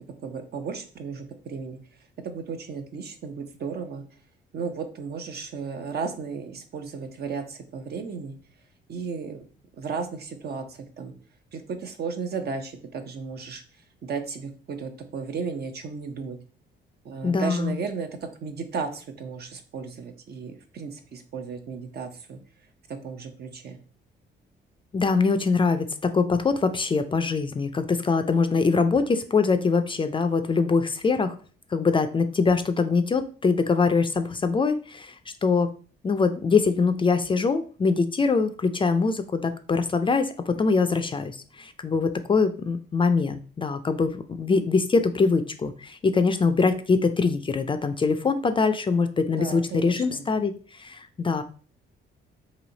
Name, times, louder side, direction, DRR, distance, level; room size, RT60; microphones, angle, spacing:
voice 1, 0.2-1.8 2.2-4.0 4.5-8.4 8.9-9.4 9.7-11.1 11.5-13.6 14.0-16.4 17.0-22.4 22.9-23.8 49.3-50.2, right 5 dB, 55° right, 7 dB, 0.7 m, -34 dB
voice 2, 17.2-17.7 24.9-31.4 31.7-35.1 35.4-35.7 36.0-50.5 50.8-51.4, left 4 dB, 25° left, 9 dB, 0.4 m, -23 dB
3.1 x 2.7 x 3.9 m, 0.40 s
cardioid pair, 90°, 20 cm